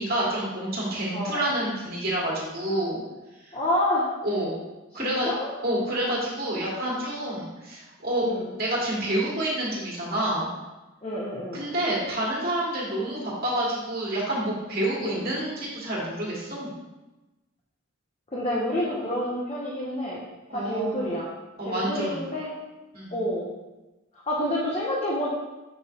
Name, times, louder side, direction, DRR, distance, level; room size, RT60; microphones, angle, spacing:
voice 1, 0.0-3.0 4.2-4.5 4.9-5.3 5.6-8.3 8.6-10.5 11.5-16.7 20.5-21.0 21.6-22.2 22.9-23.2, right 1 dB, 45° right, -5 dB, 1.6 m, -28 dB
voice 2, 1.1-1.4 3.5-4.1 4.9-5.5 8.2-8.5 11.0-11.6 15.0-15.2 18.3-20.2 20.5-21.3 21.6-22.5 23.1-23.5 24.3-25.3, left 1 dB, 30° left, -5 dB, 0.8 m, -28 dB
5.6 x 3.8 x 4.4 m, 1.1 s
head